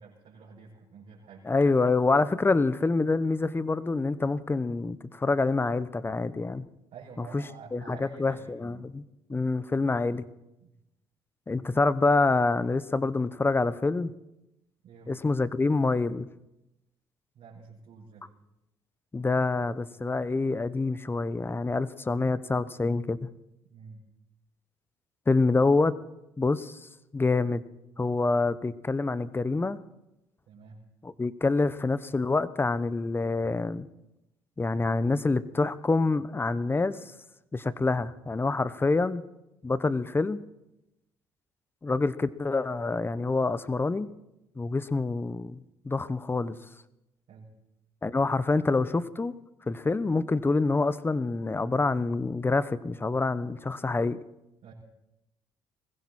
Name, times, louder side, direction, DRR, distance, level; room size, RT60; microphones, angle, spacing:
voice 1, 0.0-1.5 6.9-8.9 10.6-10.7 14.8-15.2 17.3-18.3 23.7-24.1 30.5-30.9 47.3-47.6 54.6-54.7, right 5 dB, 65° right, -6 dB, 4.7 m, -49 dB
voice 2, 1.5-6.7 7.2-7.4 7.7-9.0 9.3-10.2 11.5-14.1 15.1-16.3 19.1-23.2 25.3-25.9 26.4-26.8 27.1-27.6 28.0-29.8 31.0-33.9 34.6-37.0 37.5-39.2 39.6-40.4 41.8-44.1 44.6-45.6 45.8-46.6 48.0-49.3 49.7-54.2, left 3 dB, 20° left, 16 dB, 0.9 m, -26 dB
20.5 x 16.0 x 4.3 m, 0.89 s
supercardioid pair, 65°, 11 cm